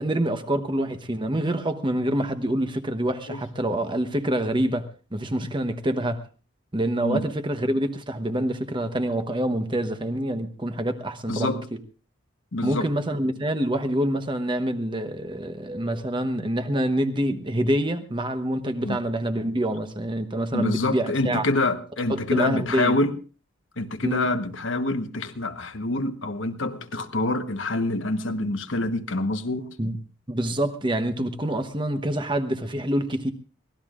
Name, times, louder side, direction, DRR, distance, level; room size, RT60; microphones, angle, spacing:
voice 1, 0.0-6.2 6.7-11.6 12.6-21.4 22.1-23.0 24.0-24.3 29.8-30.0 30.3-33.3, right 1 dB, 25° right, 1.0 m, -26 dB
voice 2, 11.3-11.6 12.5-12.9 18.8-19.0 20.5-23.1 23.8-29.7, left 2 dB, 65° left, 1.2 m, -26 dB
24.5 x 18.0 x 2.5 m
head